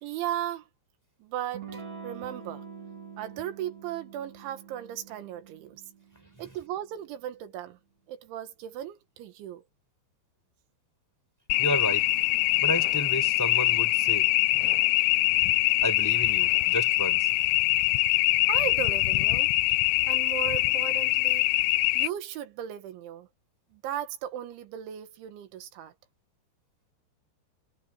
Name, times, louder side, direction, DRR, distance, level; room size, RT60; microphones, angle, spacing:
voice 1, 0.0-0.7 1.2-2.6 3.2-5.8 6.4-7.8 8.1-9.6 18.5-19.5 20.0-21.5 22.0-23.3 23.7-25.9, right 11 dB, 80° right, 4.0 m, -36 dB
Electric guitar / Strum, 1.5-6.9, right 6 dB, 40° right, 5.6 m, -45 dB
sound 1, 11.5-22.1, left 20 dB, 85° left, 2.4 m, -24 dB
voice 2, 11.6-12.1 12.6-14.8 15.8-17.3, equal, 5° left, 5.6 m, -32 dB
omnidirectional pair, 5.4 m